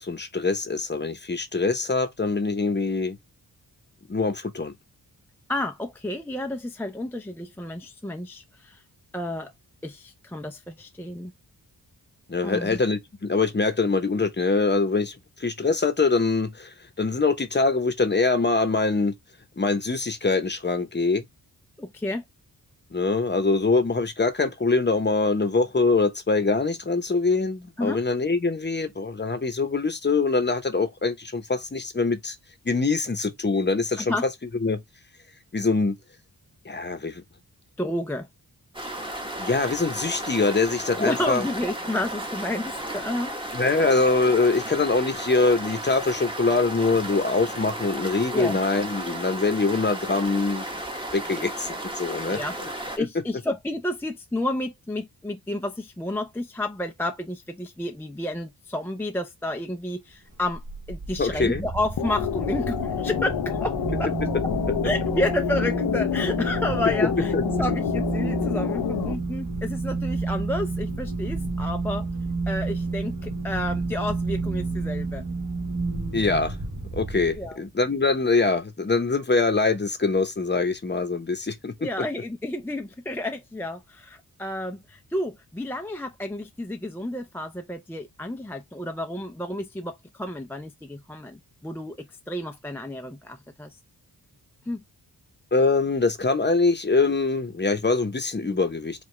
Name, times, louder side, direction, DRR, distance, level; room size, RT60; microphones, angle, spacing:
voice 1, 0.0-3.2 4.1-4.7 12.3-19.1 19.6-21.2 22.9-32.4 32.6-34.1 34.6-34.8 35.5-36.0 36.6-37.2 39.4-41.4 43.5-50.7 51.1-52.4 61.2-61.7 67.3-67.4 76.1-76.6 76.9-81.7 95.5-99.0, left 3 dB, 30° left, 0.9 m, -24 dB
voice 2, 5.5-8.8 9.1-9.5 9.8-11.3 12.4-12.8 21.8-22.2 27.8-28.0 34.0-34.3 37.8-38.3 41.0-43.3 48.3-48.6 52.3-52.6 53.0-60.6 60.9-64.1 64.8-72.1 72.5-75.2 77.4-77.6 81.8-93.8 94.7-94.8, left 1 dB, 5° left, 0.4 m, -31 dB
sound 1, 38.7-53.0, right 1 dB, 15° right, 1.1 m, -34 dB
sound 2, 60.3-77.7, right 3 dB, 45° right, 1.3 m, -30 dB
sound 3, 62.0-69.1, left 10 dB, 75° left, 0.5 m, -28 dB
4.9 x 2.4 x 3.2 m
wide cardioid pair, 85°, 39 cm